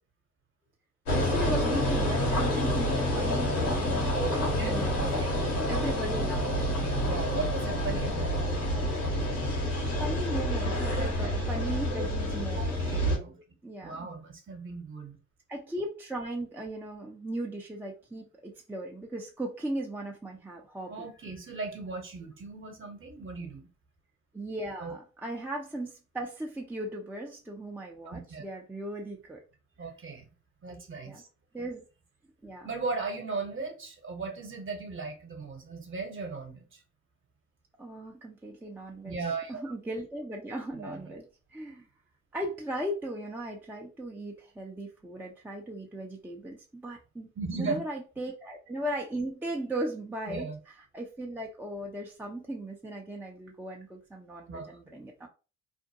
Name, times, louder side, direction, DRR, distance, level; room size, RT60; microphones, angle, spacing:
sound 1, 1.1-13.2, left 1 dB, 90° left, 1.2 m, -28 dB
voice 1, 1.1-4.1 4.6-6.7 10.0-13.0 13.6-14.1 15.5-21.1 24.3-29.4 29.8-29.9 31.0-31.2 31.5-31.8 32.4-32.7 37.8-41.9 42.3-47.3 47.5-55.3, right 1 dB, 5° right, 0.5 m, -37 dB
voice 2, 4.1-5.3 6.4-8.3 10.9-12.1 12.5-13.4 13.8-15.2 20.9-23.7 24.8-24.9 28.0-28.4 29.8-30.3 30.6-31.3 32.6-36.8 39.0-39.6 40.8-41.2 47.4-47.8 50.3-50.6 54.5-54.8, right 4 dB, 35° right, 1.0 m, -37 dB
2.6 x 2.1 x 2.7 m
hypercardioid pair, 55°, 35 cm